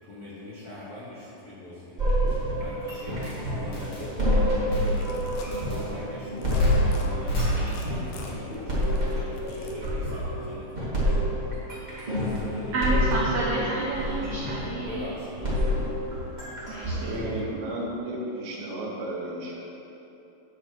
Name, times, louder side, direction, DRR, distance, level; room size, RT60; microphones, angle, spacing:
voice 1, 0.0-12.9 14.5-16.2, left 1 dB, 75° left, -8 dB, 0.8 m, -42 dB
sound 1, 2.0-17.4, equal, 20° right, 1.5 m, -28 dB
sound 2, 2.3-2.4 3.2-3.4 3.7-4.1 4.7-5.3 5.5-5.9 6.6-8.1, right 1 dB, 45° left, 2.9 m, -27 dB
sound 3, 4.8-5.5 6.3-6.6 6.9-9.9, left 4 dB, 90° left, 2.6 m, -46 dB
voice 2, 12.7-15.1 16.7-17.1, right 2 dB, 80° right, -4 dB, 1.4 m, -29 dB
voice 3, 16.9-19.6, right 1 dB, 65° right, -4 dB, 2.6 m, -33 dB
8.8 x 4.9 x 6.2 m, 2.9 s
omnidirectional pair, 3.9 m